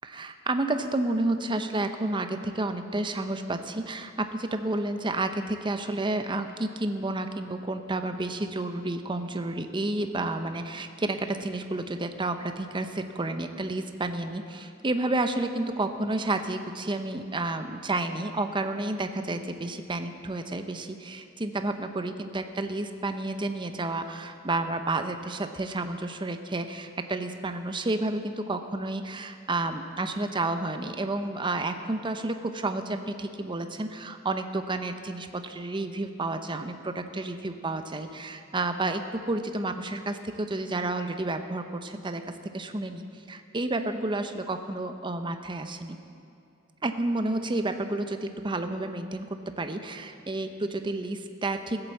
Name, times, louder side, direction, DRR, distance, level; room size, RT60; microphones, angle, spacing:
voice 1, 0.1-42.2 42.5-46.0 46.8-51.9, right 2 dB, 25° right, 8 dB, 0.7 m, -30 dB
15.5 x 7.9 x 7.2 m, 2.6 s
head